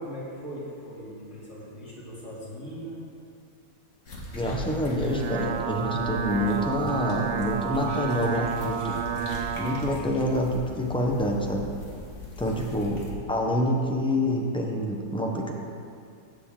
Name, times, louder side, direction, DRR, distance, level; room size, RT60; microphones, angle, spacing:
voice 1, 0.0-3.0 9.8-10.1 12.4-12.8, equal, 65° left, -8 dB, 3.4 m, -40 dB
sound 1, 4.0-13.1, left 2 dB, 45° left, 1.7 m, -41 dB
voice 2, 4.3-9.0 9.5-11.7 12.4-15.5, left 1 dB, 5° left, 0 dB, 0.4 m, -27 dB
sound 2, 5.0-9.9, right 7 dB, 85° right, 1.2 m, -31 dB
16.5 x 6.8 x 3.8 m, 2.3 s
omnidirectional pair, 1.8 m